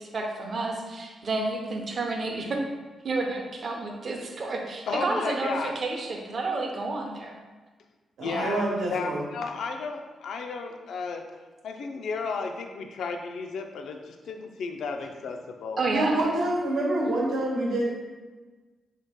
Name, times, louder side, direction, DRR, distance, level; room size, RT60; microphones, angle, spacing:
voice 1, 0.0-2.6 3.0-7.4 8.2-8.5 15.8-16.2, right 2 dB, 45° right, 1 dB, 0.6 m, -30 dB
voice 2, 4.9-5.7 8.2-8.6 8.9-11.2 11.6-15.8, left 4 dB, 75° left, 4 dB, 0.4 m, -33 dB
voice 3, 8.2-9.2 15.9-17.9, right 1 dB, 85° right, -4 dB, 1.0 m, -26 dB
3.3 x 2.8 x 3.5 m, 1.3 s
cardioid pair, 100°, 0 cm